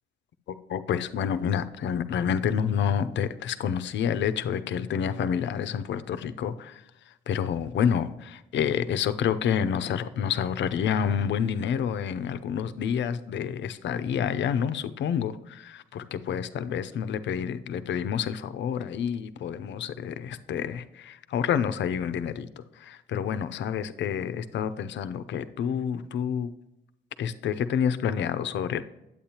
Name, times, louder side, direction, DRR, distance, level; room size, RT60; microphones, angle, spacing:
voice 1, 0.7-6.8 7.3-26.5 27.2-28.8, left 8 dB, 65° left, 12 dB, 0.6 m, -28 dB
8.6 x 8.5 x 2.9 m, 0.91 s
cardioid pair, 90°, 20 cm